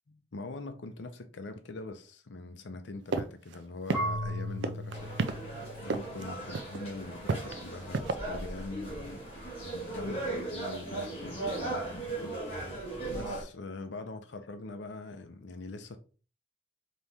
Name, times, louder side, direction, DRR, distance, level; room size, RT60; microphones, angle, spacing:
voice 1, 0.1-5.1 5.8-9.3 9.6-12.4 12.7-16.0, left 3 dB, 80° left, 0.6 m, -43 dB
sound 1, 3.1-3.2 3.5-3.6 3.9-4.3 4.6-5.3 5.9-6.2 6.5-6.8 7.3-8.1, right 4 dB, 80° right, 0.4 m, -30 dB
Marimba xylophone / Wood, 3.9-6.8, equal, 5° right, 1.6 m, -37 dB
sound 2, 4.9-13.4, right 2 dB, 30° left, 1.4 m, -38 dB
4.1 x 3.0 x 3.6 m
head